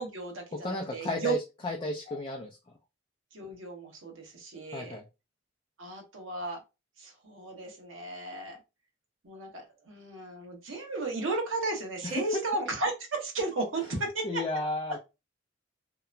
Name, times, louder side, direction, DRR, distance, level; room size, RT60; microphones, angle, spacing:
voice 1, 0.0-1.3 2.1-2.2 3.3-5.0 5.8-6.6 7.0-8.6 9.2-14.4, right 3 dB, 90° right, 1 dB, 1.0 m, -34 dB
voice 2, 0.6-1.4 1.6-2.6 4.7-5.0 12.0-12.2 14.2-15.0, left 2 dB, 25° left, 0 dB, 0.4 m, -33 dB
2.8 x 2.1 x 2.4 m, 0.27 s
head